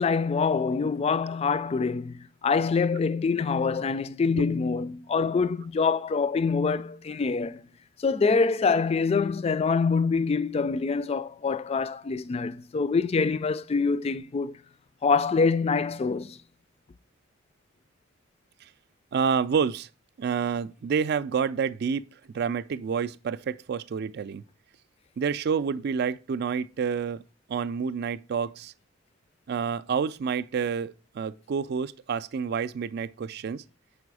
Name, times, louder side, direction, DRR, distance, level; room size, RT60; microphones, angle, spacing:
voice 1, 0.0-7.6 8.0-14.5 15.0-16.4, left 4 dB, 30° left, 0.3 m, -25 dB
voice 2, 19.1-19.9 20.2-22.0 22.3-24.4 25.2-27.2 27.5-28.7 29.5-33.6, right 6 dB, 55° right, 0.3 m, -28 dB
6.1 x 4.9 x 4.7 m
head